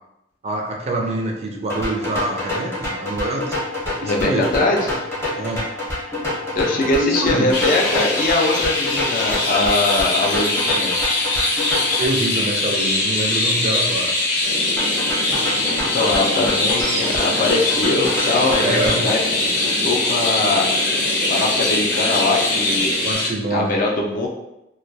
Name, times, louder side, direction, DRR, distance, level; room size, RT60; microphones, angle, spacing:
voice 1, 0.4-3.6 4.0-4.7 5.4-5.6 6.7-7.5 12.0-14.1 18.6-19.0 23.0-23.7, right 1 dB, 35° right, 1 dB, 0.3 m, -25 dB
sound 1, 1.7-12.1 14.8-19.1, left 1 dB, 15° left, 0.7 m, -28 dB
voice 2, 4.0-5.0 6.6-11.0 15.9-18.8 19.0-20.7 21.3-22.9 23.5-24.3, left 2 dB, 50° left, 0 dB, 0.4 m, -21 dB
Chirp tweet, 7.5-23.3, left 2 dB, 80° left, 0.7 m, -22 dB
sound 2, 14.4-23.1, right 1 dB, 85° right, 0.5 m, -31 dB
2.2 x 2.2 x 2.6 m, 0.89 s
head